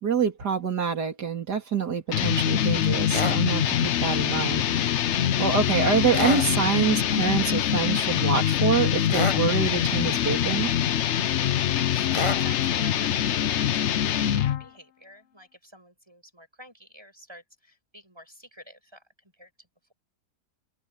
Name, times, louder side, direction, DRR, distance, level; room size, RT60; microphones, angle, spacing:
voice 1, 0.0-4.7 5.4-10.7, right 6 dB, 75° right, 3.6 m, -26 dB
sound 1, 2.1-14.6, left 10 dB, 60° left, 0.8 m, -24 dB
sound 2, 3.1-3.4 6.1-6.5 9.1-9.4 12.1-12.4, left 3 dB, 20° left, 1.0 m, -27 dB
voice 2, 11.7-19.1 19.3-19.9, equal, 15° right, 7.2 m, -49 dB
open air
omnidirectional pair, 1.8 m